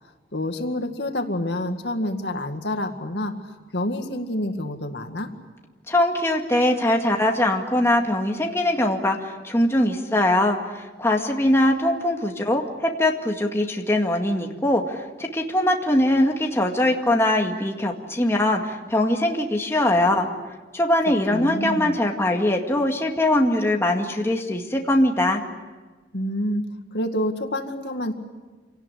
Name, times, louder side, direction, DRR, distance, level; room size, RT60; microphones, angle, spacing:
voice 1, 0.3-3.3 3.7-5.3 21.3-22.0 26.1-26.6 26.9-28.1, left 1 dB, 75° left, 6 dB, 2.0 m, -27 dB
voice 2, 5.9-20.3 20.7-25.4, left 1 dB, 15° left, 2 dB, 2.1 m, -22 dB
27.0 x 18.0 x 9.9 m, 1.3 s
head